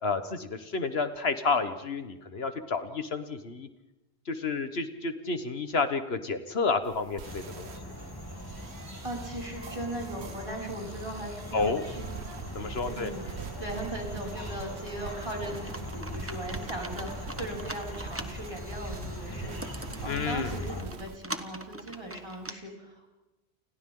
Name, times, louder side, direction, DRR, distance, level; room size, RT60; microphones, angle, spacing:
voice 1, 0.0-3.7 4.3-7.9 11.5-11.8 12.5-13.1 20.1-20.5, left 4 dB, 70° left, 9 dB, 1.5 m, -30 dB
sound 1, 6.8-21.2, right 6 dB, 80° right, 1.2 m, -44 dB
sound 2, 7.2-20.8, left 1 dB, 20° left, 3.1 m, -40 dB
voice 2, 9.0-12.0 12.8-23.1, right 1 dB, 30° right, -2 dB, 6.1 m, -39 dB
Computer keyboard, 15.5-22.5, right 1 dB, 15° right, 1.3 m, -43 dB
30.0 x 28.5 x 3.8 m, 1.0 s
omnidirectional pair, 1.1 m